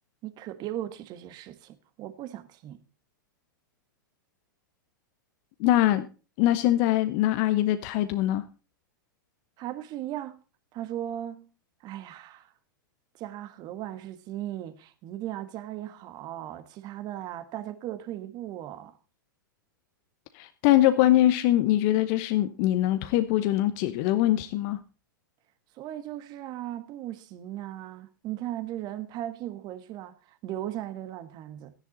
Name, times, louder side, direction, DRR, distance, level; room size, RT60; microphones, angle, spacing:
voice 1, 0.2-2.8 9.6-10.4 10.7-11.5 11.8-12.5 13.1-19.0 25.7-31.7, right 12 dB, 40° right, 1.7 m, -37 dB
voice 2, 5.6-6.1 6.4-8.4 20.3-24.8, left 14 dB, 45° left, 0.9 m, -23 dB
13.5 x 10.5 x 4.0 m
hypercardioid pair, 105°, 11 cm